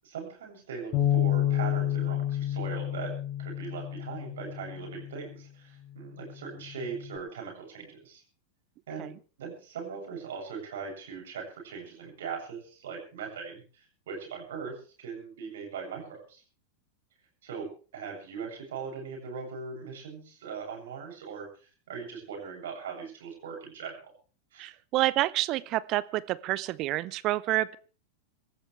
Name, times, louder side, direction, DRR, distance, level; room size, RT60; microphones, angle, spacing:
voice 1, 0.0-8.2 8.9-9.1 9.4-16.4 17.4-24.1 24.5-24.7, right 6 dB, 60° right, 1 dB, 7.8 m, -40 dB
Bass guitar, 0.9-5.3 6.0-7.2, left 12 dB, 35° left, 6.3 m, -30 dB
voice 2, 24.6-27.7, right 17 dB, 40° right, 18 dB, 0.8 m, -28 dB
26.0 x 13.5 x 3.4 m, 0.39 s
figure-of-eight pair, 90°, 0 cm